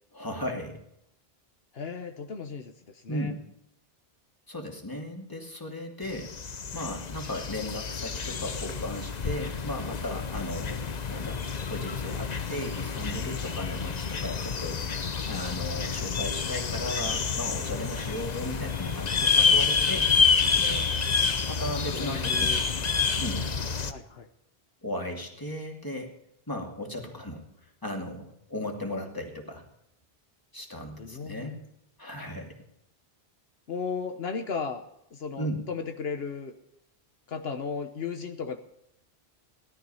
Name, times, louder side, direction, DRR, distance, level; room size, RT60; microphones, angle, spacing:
voice 1, 0.1-0.8 3.1-3.4 4.5-6.3 6.7-11.4 11.7-14.8 15.3-20.1 20.6-20.9 21.5-22.6 23.2-23.4 24.8-26.1 26.5-29.6 30.5-31.6 32.0-32.6 35.4-35.6, left 1 dB, 20° left, 1 dB, 2.5 m, -36 dB
voice 2, 1.7-3.3 7.6-7.7 21.9-22.6 23.0-23.2 23.9-24.3 31.0-31.6 33.7-34.8 35.1-36.5 37.3-38.6, left 5 dB, 75° left, 7 dB, 1.2 m, -35 dB
sound 1, 6.1-23.9, left 5 dB, 45° left, 0.9 m, -28 dB
17.5 x 12.5 x 5.6 m, 0.78 s
omnidirectional pair, 1.1 m